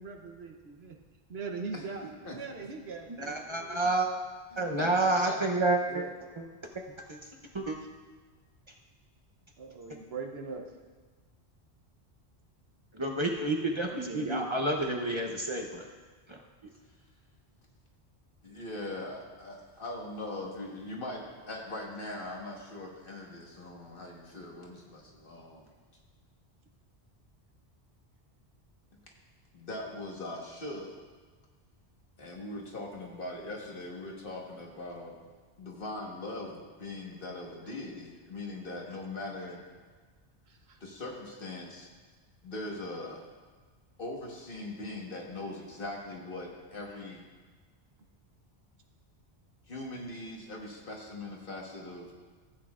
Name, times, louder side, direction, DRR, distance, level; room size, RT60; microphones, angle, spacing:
voice 1, 0.0-0.9 1.3-2.1 2.3-3.8 4.6-4.7 5.8-6.1 9.6-10.7 13.9-14.5 38.9-39.0 40.5-40.8 46.9-47.0, right 4 dB, 70° right, 3 dB, 1.0 m, -41 dB
voice 2, 3.1-4.1 4.6-6.0 6.4-6.5 6.7-7.8 9.9-10.0 12.9-15.9 16.3-16.7, right 2 dB, 30° right, 0 dB, 0.7 m, -30 dB
voice 3, 4.5-5.4 18.4-25.7 29.5-30.9 32.2-35.1 35.6-39.6 40.8-41.9 42.4-43.2 44.0-47.2 49.7-52.1, left 2 dB, 55° left, -1 dB, 1.6 m, -41 dB
15.0 x 8.4 x 2.4 m, 1.4 s
omnidirectional pair, 1.1 m